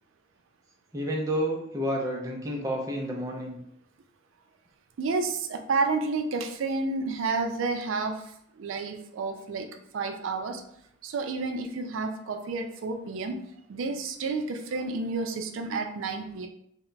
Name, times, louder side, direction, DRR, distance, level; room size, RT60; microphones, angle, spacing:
voice 1, 0.9-3.6, equal, 15° right, -1 dB, 0.4 m, -30 dB
voice 2, 5.0-10.6 11.0-13.4 13.7-16.5, right 3 dB, 85° right, 6 dB, 0.4 m, -30 dB
2.2 x 2.1 x 3.8 m, 0.70 s
head